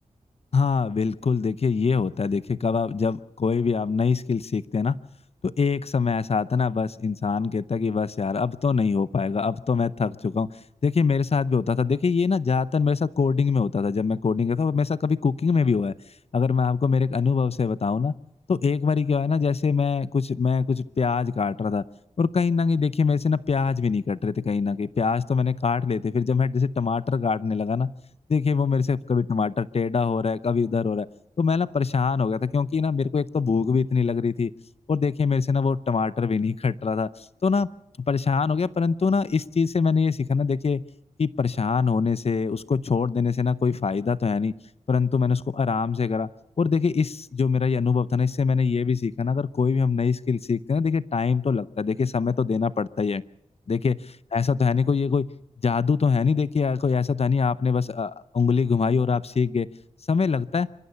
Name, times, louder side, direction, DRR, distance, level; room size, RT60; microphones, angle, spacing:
voice 1, 0.5-5.0 5.4-10.5 10.8-15.9 16.3-18.1 18.5-21.8 22.2-27.9 28.3-31.1 31.4-34.5 34.9-37.7 38.1-40.8 41.2-44.5 44.9-46.3 46.6-53.2 53.7-55.3 55.6-59.7 60.1-60.7, left 5 dB, 55° left, 17 dB, 0.7 m, -23 dB
27.0 x 14.5 x 6.9 m, 0.83 s
wide cardioid pair, 75°, 13 cm